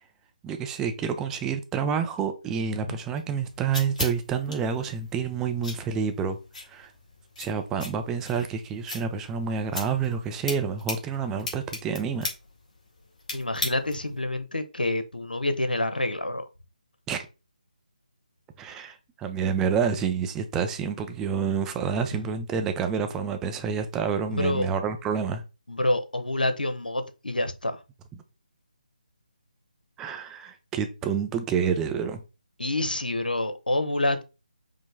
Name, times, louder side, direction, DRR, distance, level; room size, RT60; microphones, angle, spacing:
voice 1, 0.4-6.4 6.7-6.9 7.4-12.3 17.1-17.2 18.6-25.4 30.0-32.2, right 6 dB, 10° right, 0.4 m, -28 dB
sound 1, 3.1-14.2, left 2 dB, 55° left, 1.9 m, -39 dB
voice 2, 13.3-16.4 22.1-22.2 24.3-24.7 25.7-27.8 32.6-34.2, left 1 dB, 90° left, 0.9 m, -27 dB
5.0 x 2.1 x 3.4 m
figure-of-eight pair, 155°, 5 cm